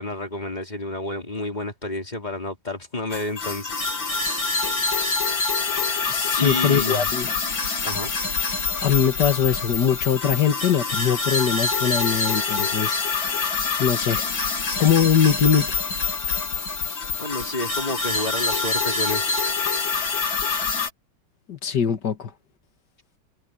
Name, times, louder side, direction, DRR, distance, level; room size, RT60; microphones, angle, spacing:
voice 1, 0.0-3.9 4.1-4.5 4.8-5.2 6.4-7.1 7.8-8.1 17.2-19.3, left 2 dB, 20° left, 4.0 m, -30 dB
sound 1, 3.1-20.9, left 4 dB, 85° left, 4.6 m, -26 dB
voice 2, 6.1-7.3 8.8-13.0 13.8-14.3 14.8-15.8 21.5-22.3, left 8 dB, 60° left, 2.2 m, -22 dB
omnidirectional pair, 2.1 m